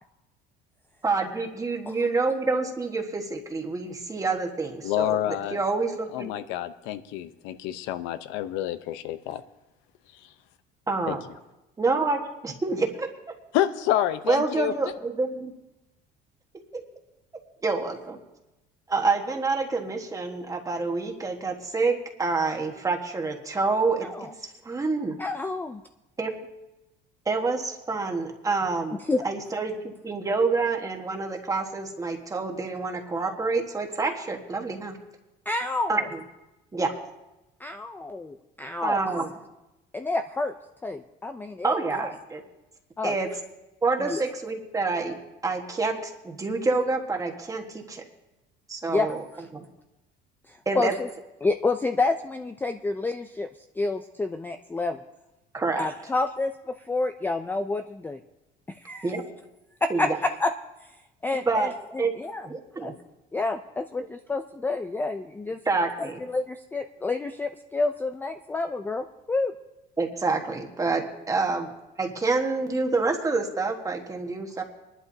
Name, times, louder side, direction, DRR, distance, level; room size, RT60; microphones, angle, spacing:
voice 1, 1.0-5.2 5.5-6.3 10.9-11.2 11.8-13.4 14.3-15.5 16.7-16.8 17.6-18.2 18.9-24.1 24.4-25.2 26.2-26.3 27.2-35.0 35.9-36.0 36.7-36.9 38.8-39.3 41.6-42.4 43.0-43.3 43.8-45.2 45.4-48.0 48.7-49.2 49.5-49.6 50.6-50.9 55.5-55.9 59.0-59.2 59.9-60.2 61.5-61.7 62.0-62.1 62.5-62.9 65.7-66.2 70.0-71.7 72.0-74.6, right 3 dB, 15° right, 2 dB, 1.4 m, -27 dB
voice 2, 4.8-5.6 6.1-9.4 11.1-11.2 13.5-14.7, left 12 dB, 85° left, 12 dB, 0.8 m, -28 dB
voice 3, 24.0-24.3 25.2-25.8 29.0-29.3 35.5-36.1 37.6-39.3 39.9-40.5 40.8-42.1 43.0-43.2 44.0-44.2 48.9-49.4 50.5-51.1 51.4-53.5 53.8-55.0 55.8-58.2 58.7-59.2 59.8-60.5 60.8-61.0 61.2-62.5 62.8-62.9 63.3-65.6 66.0-69.5, left 3 dB, 10° left, 7 dB, 0.4 m, -29 dB
23.0 x 11.5 x 2.7 m, 0.98 s
cardioid pair, 130°, 19 cm